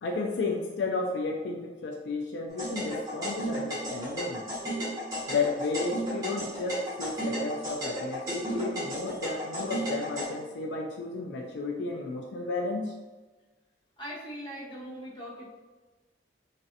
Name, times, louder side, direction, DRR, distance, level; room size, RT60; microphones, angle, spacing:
voice 1, 0.0-4.5 5.3-12.9, left 3 dB, 75° left, 1 dB, 0.3 m, -33 dB
sound 1, 2.6-10.2, right 1 dB, 20° right, 1.4 m, -33 dB
voice 2, 14.0-15.5, equal, 25° left, -6 dB, 0.9 m, -40 dB
3.1 x 2.5 x 2.6 m, 1.2 s
head